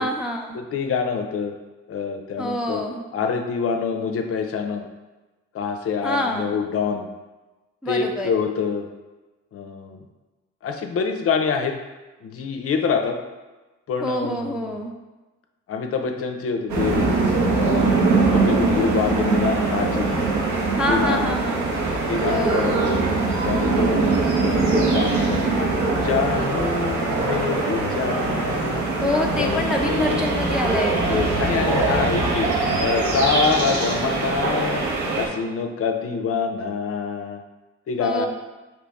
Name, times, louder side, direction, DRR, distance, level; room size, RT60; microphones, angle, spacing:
voice 1, 0.0-0.6 2.4-3.0 6.0-6.6 7.8-8.3 14.0-14.9 20.8-21.7 22.3-22.8 29.0-31.0 38.0-38.3, left 1 dB, 5° right, 0 dB, 0.4 m, -26 dB
voice 2, 0.5-1.5 1.9-2.8 3.1-4.9 5.5-7.1 7.9-8.9 9.5-10.0 10.6-11.7 12.2-13.2 13.9-14.8 15.7-17.2 17.5-18.0 18.3-20.3 20.9-21.3 22.1-23.0 23.4-24.0 24.4-25.6 25.9-28.9 29.4-30.3 31.1-32.5 32.8-34.9 35.2-37.4 37.9-38.3, left 5 dB, 50° left, 5 dB, 0.5 m, -26 dB
sound 1, 16.7-35.3, right 3 dB, 75° right, 1.0 m, -22 dB
4.0 x 2.9 x 3.4 m, 1.2 s
cardioid pair, 90°, 30 cm